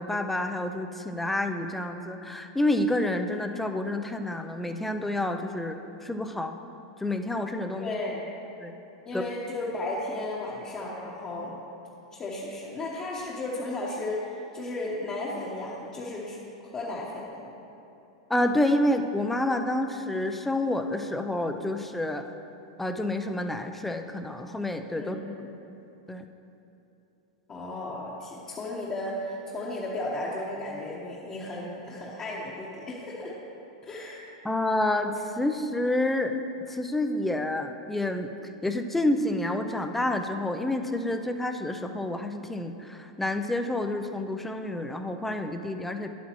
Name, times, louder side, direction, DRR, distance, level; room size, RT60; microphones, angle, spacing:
voice 1, 0.0-6.6 7.0-7.9 8.6-8.7 9.1-9.2 18.3-22.2 22.8-25.2 26.1-26.2 34.4-36.3 36.7-38.3 38.6-46.1, left 1 dB, 5° left, 6 dB, 0.5 m, -28 dB
voice 2, 7.8-8.2 9.0-11.6 12.1-17.5 25.0-25.5 27.5-33.3 33.8-34.2, left 2 dB, 25° left, -5 dB, 1.1 m, -34 dB
10.5 x 8.3 x 3.1 m, 3.0 s
hypercardioid pair, 105°, 3 cm